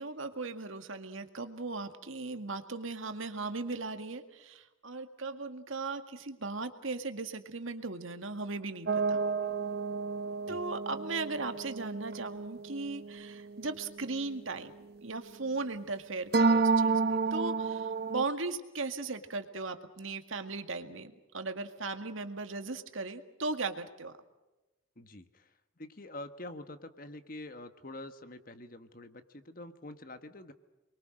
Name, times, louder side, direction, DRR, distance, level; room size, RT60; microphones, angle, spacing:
voice 1, 0.0-9.2 10.5-14.7 15.0-24.1, right 3 dB, 80° right, 7 dB, 2.0 m, -37 dB
sound 1, 8.9-14.3 16.3-18.2, right 4 dB, 50° right, 0.8 m, -30 dB
voice 2, 24.9-30.5, left 1 dB, 45° left, 9 dB, 1.5 m, -46 dB
29.5 x 22.5 x 6.5 m, 1.0 s
head